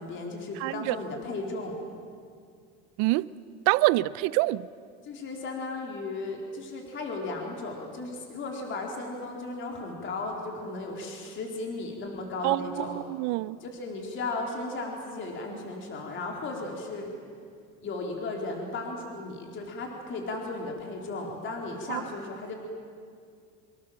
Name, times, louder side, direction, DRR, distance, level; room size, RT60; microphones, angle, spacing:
voice 1, 0.0-1.8 5.0-13.0 13.6-17.1 17.8-22.5, left 2 dB, 35° left, 4.1 m, -35 dB
voice 2, 0.6-1.0 3.0-3.3 3.7-4.6 12.4-13.6 21.9-22.0, right 19 dB, 55° right, 0.7 m, -26 dB
26.5 x 25.0 x 7.6 m
cardioid pair, 145°, 34 cm